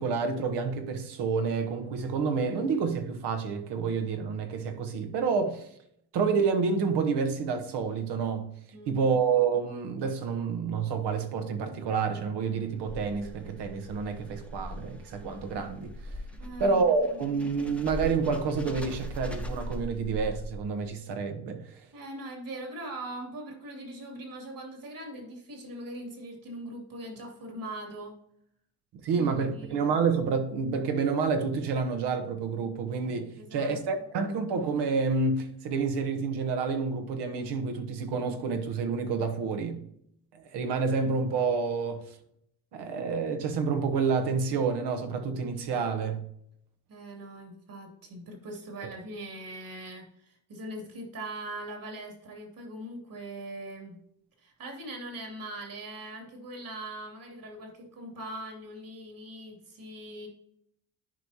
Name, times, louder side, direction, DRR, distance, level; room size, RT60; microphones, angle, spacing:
voice 1, 0.0-5.7 6.1-8.5 8.9-16.0 16.6-21.6 29.0-39.8 40.5-42.1 42.7-46.2, right 5 dB, 70° right, 1.2 m, -28 dB
voice 2, 8.7-9.2 16.4-16.8 17.1-17.4 21.9-28.2 29.1-29.9 33.3-34.1 46.9-54.0 54.4-60.3, right 1 dB, 50° right, 2.8 m, -41 dB
sound 1, 12.5-20.9, equal, 5° left, 1.0 m, -40 dB
10.5 x 4.8 x 2.9 m
cardioid pair, 90°, 42 cm